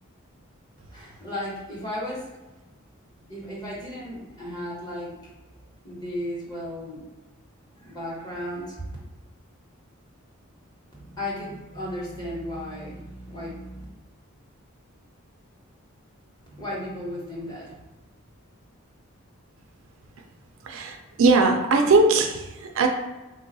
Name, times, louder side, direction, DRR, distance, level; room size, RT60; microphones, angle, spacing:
voice 1, 0.9-2.3 3.2-5.3 5.8-7.0 7.8-9.0 10.9-13.8 16.5-17.9, left 1 dB, 20° left, -5 dB, 0.9 m, -35 dB
voice 2, 20.6-22.9, right 3 dB, 65° right, 3 dB, 0.4 m, -20 dB
3.2 x 2.3 x 4.0 m, 1.1 s
head